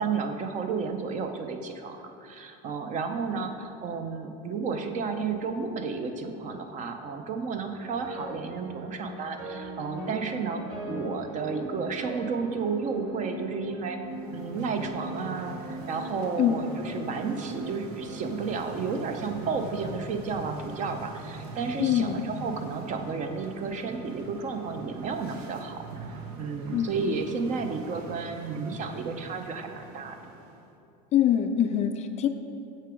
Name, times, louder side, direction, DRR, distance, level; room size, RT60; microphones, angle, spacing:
voice 1, 0.0-10.6 10.9-14.0 14.3-30.2, right 5 dB, 40° right, 6 dB, 0.7 m, -32 dB
sound 1, 7.7-20.0, right 1 dB, 20° right, 2.0 m, -40 dB
sound 2, 14.0-30.7, right 2 dB, 85° right, 0.9 m, -42 dB
voice 2, 21.8-22.2 26.7-26.9 31.1-32.3, left 10 dB, 35° left, 8 dB, 0.4 m, -24 dB
6.8 x 6.5 x 5.0 m, 2.7 s
supercardioid pair, 135°, 20 cm